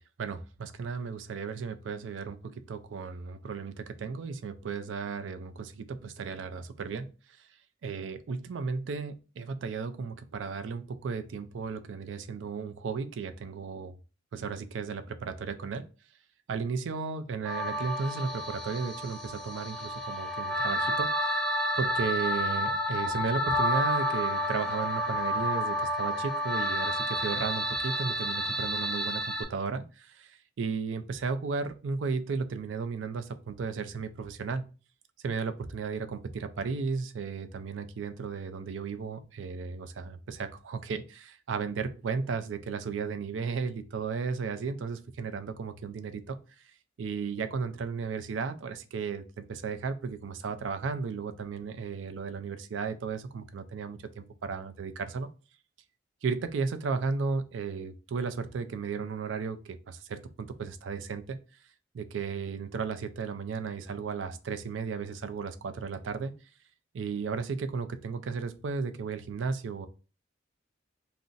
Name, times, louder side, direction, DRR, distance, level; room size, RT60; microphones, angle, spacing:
voice 1, 0.0-7.1 7.8-14.0 14.3-15.8 16.5-21.4 21.8-34.7 35.2-46.4 47.0-55.3 56.2-61.4 61.9-66.3 66.9-69.9, right 5 dB, 80° right, 9 dB, 0.4 m, -34 dB
sound 1, 17.4-29.4, equal, 5° left, 0.4 m, -30 dB
2.5 x 2.0 x 3.8 m, 0.34 s
head